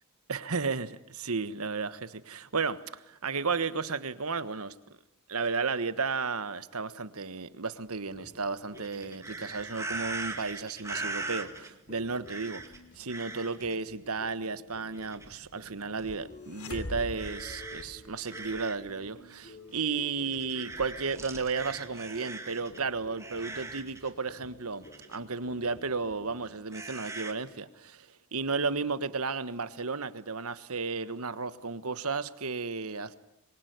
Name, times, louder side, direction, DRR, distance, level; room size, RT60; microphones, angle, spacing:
voice 1, 0.3-4.7 5.3-12.6 12.9-33.2, right 4 dB, 75° right, 13 dB, 1.4 m, -33 dB
sound 1, 8.0-21.3 21.6-26.5, left 1 dB, 40° left, 4.4 m, -53 dB
sound 2, 8.8-11.7 12.3-12.8 13.1-13.8 14.9-15.5 16.0-16.2 17.2-18.9 19.3-19.4 20.2-22.8 23.2-24.1 24.8-25.2 26.7-27.3, right 3 dB, 15° right, 2.2 m, -40 dB
sound 3, 16.5-18.5, left 1 dB, 80° left, 3.0 m, -41 dB
26.5 x 23.0 x 9.4 m, 0.81 s
head